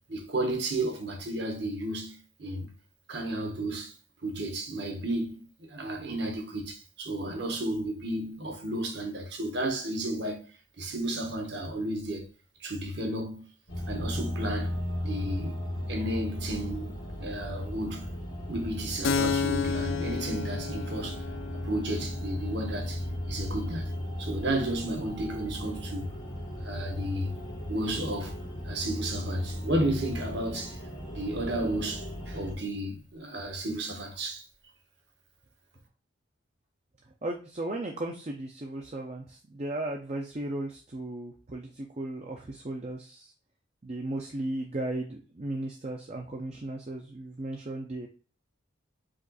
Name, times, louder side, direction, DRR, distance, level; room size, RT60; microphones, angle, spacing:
voice 1, 0.1-2.7 3.1-3.9 4.2-10.5 10.8-12.3 12.6-13.5 13.9-14.7 15.0-15.6 15.9-16.9 17.2-18.1 18.5-21.2 21.6-23.9 24.2-26.1 26.6-27.4 27.7-28.4 28.6-30.8 31.1-34.4, right 1 dB, 55° right, 1.1 m, -33 dB
sound 1, 13.7-32.5, left 1 dB, 85° left, 1.7 m, -36 dB
Keyboard (musical), 19.0-26.3, left 5 dB, 70° left, 0.4 m, -35 dB
voice 2, 37.2-43.3 43.8-48.1, right 1 dB, 35° right, 0.5 m, -36 dB
5.1 x 2.5 x 4.0 m
head